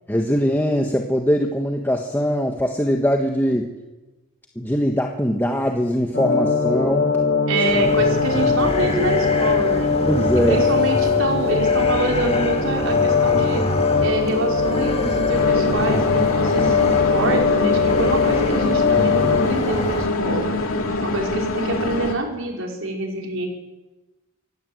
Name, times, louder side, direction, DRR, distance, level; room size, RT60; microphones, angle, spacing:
voice 1, 0.1-3.7 4.5-7.1 10.0-10.6, equal, 10° left, 2 dB, 1.4 m, -21 dB
sound 1, 6.1-19.6, left 5 dB, 50° left, 1.7 m, -21 dB
voice 2, 7.5-9.9 10.5-13.6 14.0-20.5 21.0-23.5, right 2 dB, 65° right, 1 dB, 5.1 m, -26 dB
sound 2, 7.7-20.1, left 1 dB, 30° left, 2.2 m, -28 dB
sound 3, 15.3-22.2, left 2 dB, 80° left, 2.5 m, -24 dB
25.5 x 17.0 x 8.0 m, 1.1 s
head